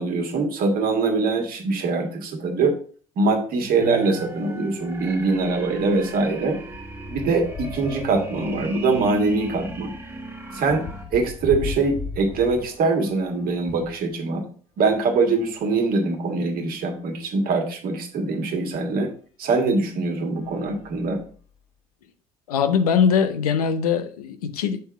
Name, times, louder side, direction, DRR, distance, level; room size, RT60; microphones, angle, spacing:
voice 1, 0.0-2.8 3.2-6.6 7.1-9.9 10.5-10.8 11.1-14.4 14.8-19.1 19.4-21.2, right 3 dB, 50° right, 1.6 m, -23 dB
sound 1, 3.6-3.7 4.1-4.3 4.5-14.0 14.7-16.1 16.8-16.9 17.1-17.2 18.9-19.0 19.7-19.9 20.3-21.6, left 4 dB, 55° left, 2.8 m, -40 dB
sound 2, 3.8-11.0, right 2 dB, 15° right, 1.5 m, -36 dB
voice 2, 22.5-24.8, left 7 dB, 80° left, 0.6 m, -21 dB
6.7 x 3.6 x 4.8 m
hypercardioid pair, 60°, 19 cm